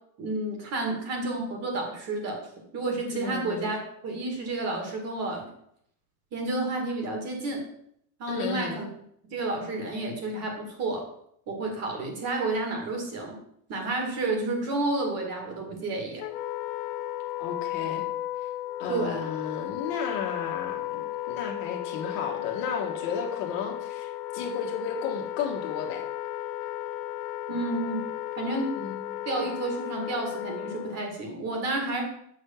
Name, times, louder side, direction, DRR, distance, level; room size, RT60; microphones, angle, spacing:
voice 1, 0.2-2.4 2.7-5.5 6.3-7.6 8.2-8.9 9.3-11.0 11.5-13.3 13.7-16.2 18.9-19.3 27.5-28.1 28.4-28.8 29.2-32.0, right 2 dB, 35° right, 2 dB, 2.2 m, -30 dB
voice 2, 3.1-3.7 8.3-8.8 17.4-18.0 18.8-26.0 28.7-29.3, left 6 dB, 50° left, 1 dB, 1.7 m, -34 dB
Wind instrument woodwind instrument, 16.2-31.1, left 14 dB, 80° left, 0.8 m, -34 dB
6.4 x 5.6 x 7.2 m, 0.71 s
cardioid pair, 170°, 45 cm